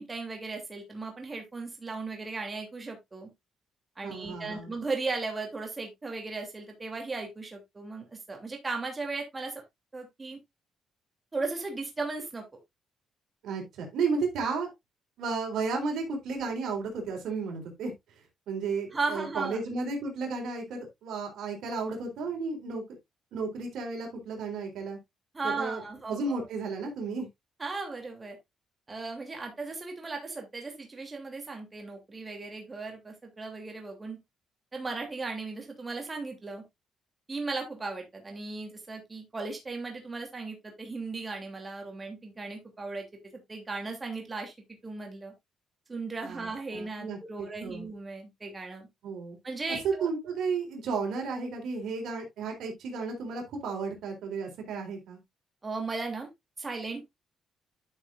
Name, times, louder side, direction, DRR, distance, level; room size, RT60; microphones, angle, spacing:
voice 1, 0.0-3.3 4.0-9.6 9.9-10.4 11.3-12.4 18.9-19.6 25.3-26.4 27.6-28.4 28.9-34.2 34.7-36.6 37.3-43.0 43.5-44.5 44.8-45.3 45.9-48.9 49.4-50.1 55.6-56.3 56.6-57.0, right 3 dB, 25° right, 2.9 m, -36 dB
voice 2, 4.0-4.7 13.4-14.7 15.2-17.9 18.5-22.8 23.3-25.0 25.4-25.8 26.1-27.3 46.2-47.9 49.0-49.4 49.7-55.2, right 4 dB, 75° right, 3.8 m, -33 dB
11.5 x 6.3 x 2.5 m
cardioid pair, 90°, 0 cm